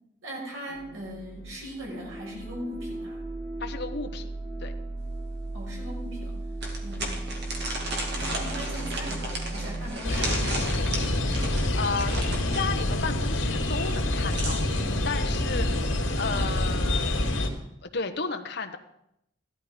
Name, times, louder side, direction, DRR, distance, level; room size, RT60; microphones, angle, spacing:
voice 1, 0.2-3.2 5.5-6.4 6.8-7.4 8.1-10.9, equal, 85° right, -3 dB, 6.0 m, -40 dB
sound 1, 0.7-9.9, right 2 dB, 35° right, 5.1 m, -36 dB
voice 2, 3.6-4.3 4.6-4.7 11.8-12.1 12.5-17.4 17.8-18.8, left 4 dB, 55° left, 6 dB, 1.1 m, -33 dB
sound 2, 5.1-5.2 5.7-5.8 6.6-12.7 13.9-14.8, right 1 dB, 55° right, 2.5 m, -34 dB
sound 3, 10.0-17.5, left 1 dB, 80° left, 2.2 m, -26 dB
15.0 x 12.5 x 5.1 m, 0.77 s
head